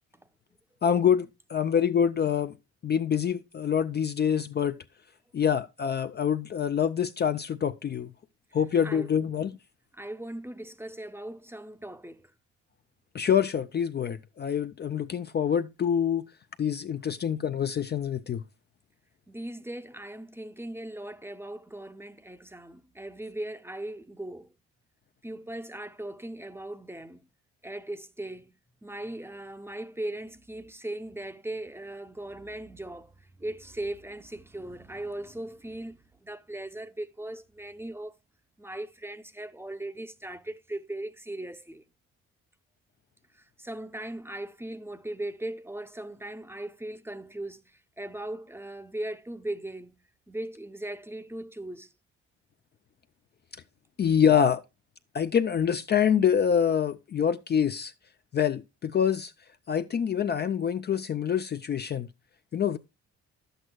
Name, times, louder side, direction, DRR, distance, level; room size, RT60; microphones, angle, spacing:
voice 1, 0.8-2.6 2.8-4.8 5.3-8.1 8.5-9.5 13.1-16.3 16.6-18.4 54.0-54.6 55.1-57.9 58.3-59.3 59.7-62.1 62.5-62.8, left 8 dB, 35° left, 0.4 m, -26 dB
voice 2, 9.9-12.3 19.3-24.5 25.2-27.3 27.6-28.5 28.8-38.2 38.6-41.8 43.3-50.0 50.3-51.9, right 1 dB, 10° right, 0.6 m, -39 dB
11.0 x 7.9 x 2.2 m
cardioid pair, 90°, 30 cm